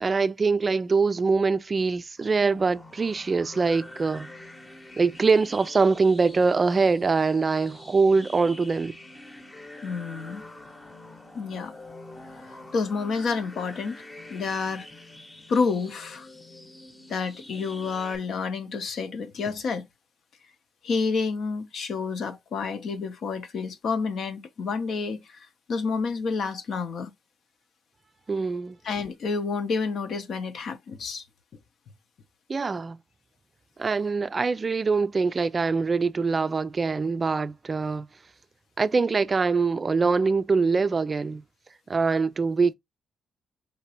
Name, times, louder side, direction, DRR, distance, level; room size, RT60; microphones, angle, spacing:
voice 1, 0.0-4.3 5.0-9.0 28.3-28.8 32.5-33.0 33.8-38.1 38.8-41.4 41.9-42.7, right 4 dB, 35° right, 0.3 m, -23 dB
sound 1, 2.2-18.2, left 1 dB, 20° left, 0.9 m, -45 dB
voice 2, 9.8-10.4 11.3-11.7 12.4-14.0 14.3-14.9 15.5-16.3 17.1-19.8 20.8-27.1 28.8-31.2, left 4 dB, 65° left, 0.7 m, -29 dB
5.2 x 2.8 x 2.9 m
cardioid pair, 80°, 0 cm